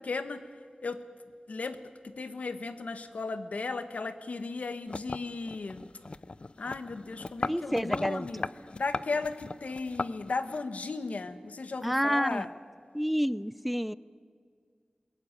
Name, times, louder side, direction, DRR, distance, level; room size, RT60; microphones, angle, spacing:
voice 1, 0.1-0.4 0.8-1.0 1.5-1.8 2.0-5.8 6.6-8.4 8.8-12.5, left 3 dB, 85° left, 11 dB, 1.2 m, -35 dB
sound 1, 4.9-10.6, left 3 dB, 50° left, 0.5 m, -38 dB
voice 2, 7.4-8.5 11.8-12.5 12.9-13.9, equal, ahead, 18 dB, 0.5 m, -29 dB
21.0 x 18.0 x 9.8 m, 2.1 s
wide cardioid pair, 60°, 2 cm